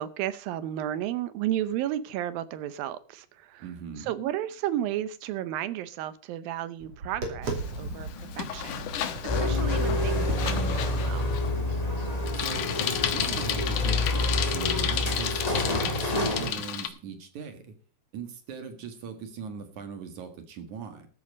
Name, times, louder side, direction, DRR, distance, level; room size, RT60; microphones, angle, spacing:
voice 1, 0.0-3.7 4.0-7.5 7.8-8.9 9.2-11.3, right 12 dB, 75° right, 14 dB, 2.3 m, -33 dB
voice 2, 3.6-4.2 12.3-17.7 18.1-21.1, right 6 dB, 55° right, 7 dB, 2.6 m, -40 dB
Tap, 6.8-13.5, right 3 dB, 40° right, 3.6 m, -39 dB
Bicycle, 7.4-16.9, left 10 dB, 65° left, 2.3 m, -33 dB
sound 1, 9.3-16.5, left 2 dB, 20° left, 1.1 m, -28 dB
14.0 x 9.0 x 5.2 m, 0.38 s
omnidirectional pair, 4.6 m